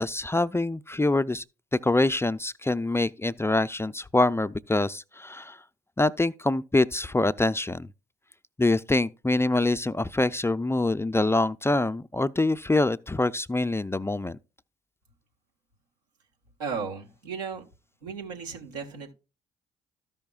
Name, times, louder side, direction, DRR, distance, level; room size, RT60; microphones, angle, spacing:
voice 1, 0.0-1.4 1.8-5.6 6.0-7.9 8.6-14.4, left 2 dB, 10° left, 0.5 m, -25 dB
voice 2, 16.6-17.6 18.0-19.1, right 5 dB, 85° right, 1.5 m, -35 dB
13.5 x 5.6 x 2.4 m
hypercardioid pair, 45°, 20 cm